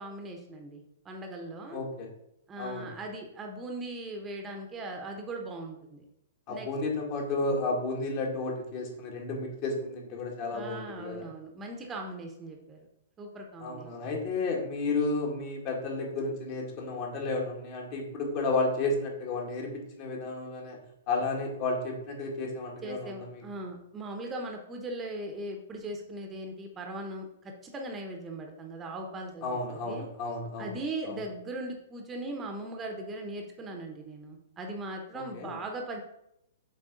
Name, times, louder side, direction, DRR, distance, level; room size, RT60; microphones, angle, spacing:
voice 1, 0.0-1.8 2.5-6.0 6.5-6.7 10.5-12.8 13.2-13.9 22.8-30.0 30.6-36.0, right 2 dB, 20° right, 3 dB, 1.0 m, -39 dB
voice 2, 1.7-2.1 2.6-2.9 6.5-11.3 13.6-20.8 21.1-23.4 29.4-30.8 31.1-31.2 35.3-35.6, left 3 dB, 40° left, 0 dB, 1.9 m, -32 dB
7.4 x 4.2 x 4.0 m, 0.80 s
figure-of-eight pair, 110°, 0 cm